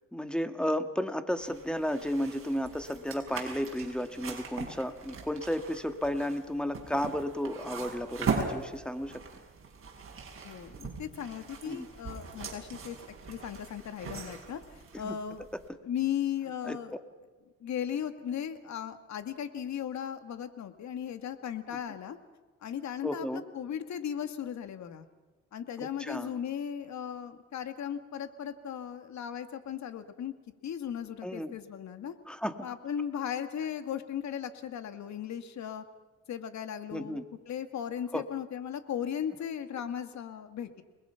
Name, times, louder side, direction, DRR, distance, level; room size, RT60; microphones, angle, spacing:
voice 1, 0.1-9.2 11.7-11.9 15.0-15.2 16.6-16.8 23.0-23.4 26.0-26.3 31.2-31.6 32.3-32.6 36.9-37.2 38.1-38.2, equal, 5° left, 8 dB, 2.0 m, -33 dB
sound 1, 1.4-15.7, right 5 dB, 45° right, 6.2 m, -40 dB
voice 2, 10.4-13.0 13.3-15.4 15.8-16.9 17.6-22.2 22.6-25.1 25.5-30.3 30.6-32.2 32.6-35.8 36.3-40.8, left 9 dB, 65° left, 9 dB, 2.2 m, -37 dB
29.0 x 21.0 x 5.9 m, 1.3 s
cardioid pair, 90°, 30 cm